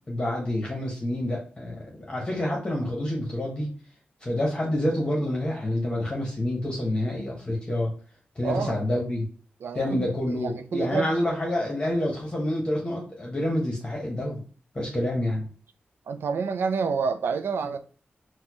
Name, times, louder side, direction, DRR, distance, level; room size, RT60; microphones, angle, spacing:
voice 1, 0.1-1.8 2.1-3.7 4.2-7.9 8.3-9.2 9.7-14.4 14.7-15.5, left 1 dB, 25° left, 1.0 m, -28 dB
voice 2, 8.4-9.0 9.6-11.1 16.1-17.8, right 5 dB, 85° right, 0.4 m, -29 dB
4.2 x 2.2 x 2.9 m
wide cardioid pair, 80°, 4 cm